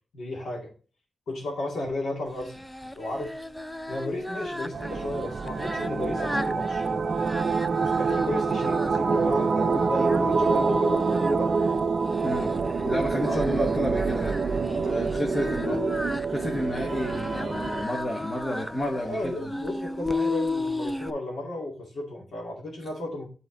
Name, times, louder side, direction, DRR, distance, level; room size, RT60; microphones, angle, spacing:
voice 1, 0.1-0.7 1.3-2.6 3.0-3.3 3.9-7.3 7.8-11.5 13.2-13.4 14.7-15.8 16.9-17.1 18.9-23.3, left 1 dB, 85° left, -2 dB, 2.3 m, -34 dB
Singing, 2.4-21.1, left 2 dB, 5° left, 0.4 m, -35 dB
sound 1, 4.7-17.8, right 4 dB, 50° right, 0.5 m, -26 dB
voice 2, 12.8-15.8 16.3-19.5, left 1 dB, 30° left, 2 dB, 1.1 m, -31 dB
8.7 x 4.1 x 3.9 m, 0.38 s
wide cardioid pair, 120°, 0 cm